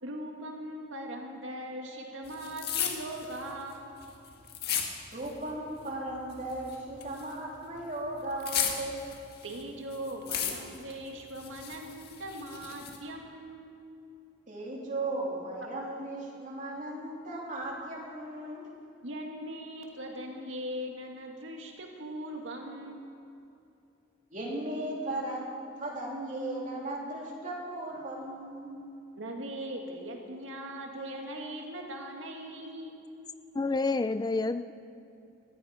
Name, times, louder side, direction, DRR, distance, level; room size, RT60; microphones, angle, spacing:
voice 1, 0.0-3.9 9.4-13.7 15.6-15.7 19.0-23.0 29.1-32.9, right 1 dB, 75° right, 1 dB, 2.1 m, -40 dB
sound 1, 2.3-5.5 5.8-7.4 7.8-9.6 9.9-10.9 11.3-13.0, left 8 dB, 55° left, 1.8 m, -35 dB
voice 2, 5.1-9.0 14.5-18.7 24.3-25.5 25.8-28.8, right 1 dB, 40° right, -2 dB, 3.2 m, -36 dB
voice 3, 33.6-34.7, left 3 dB, 20° left, 11 dB, 0.3 m, -28 dB
19.0 x 14.5 x 5.1 m, 2.7 s
head